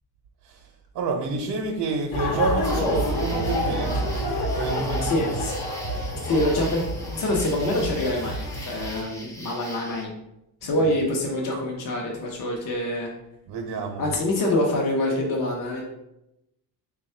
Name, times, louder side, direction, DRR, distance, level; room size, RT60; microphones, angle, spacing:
voice 1, 0.9-4.0 4.6-5.2 10.6-10.8 13.5-14.0, right 3 dB, 65° right, 3 dB, 0.7 m, -28 dB
sound 1, 2.1-9.0, equal, 75° left, 1.0 m, -28 dB
sound 2, 2.6-10.1, equal, 10° left, 0.5 m, -42 dB
voice 2, 5.0-5.6 6.2-6.8 7.1-8.4 8.7-10.1 10.6-13.1 14.0-15.8, left 1 dB, 50° left, -1 dB, 0.7 m, -25 dB
3.4 x 2.3 x 4.3 m, 0.87 s
cardioid pair, 135°, 40 cm